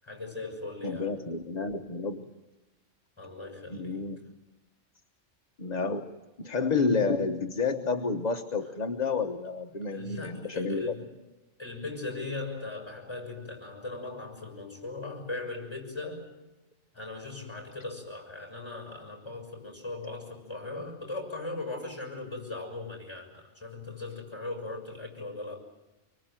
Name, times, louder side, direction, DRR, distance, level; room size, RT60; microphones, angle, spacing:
voice 1, 0.0-1.2 3.2-4.2 9.9-11.1 11.6-16.3 16.9-25.6, left 3 dB, 20° left, 2 dB, 6.2 m, -39 dB
voice 2, 0.8-2.2 3.7-4.2 5.6-6.1 6.4-10.9, left 4 dB, 35° left, 5 dB, 1.1 m, -30 dB
25.0 x 24.5 x 8.9 m, 1.1 s
omnidirectional pair, 1.3 m